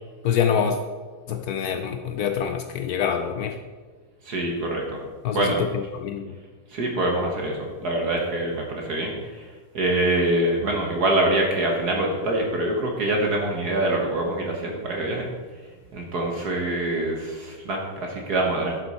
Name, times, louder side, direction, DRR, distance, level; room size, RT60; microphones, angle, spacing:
voice 1, 0.2-0.8 1.3-3.6 5.2-5.5 5.9-6.4, left 7 dB, 90° left, 6 dB, 0.8 m, -25 dB
voice 2, 4.2-5.0 5.3-5.6 6.7-15.3 15.9-18.8, right 1 dB, 55° right, 0 dB, 1.6 m, -25 dB
10.5 x 7.8 x 4.2 m, 1.4 s
omnidirectional pair, 2.2 m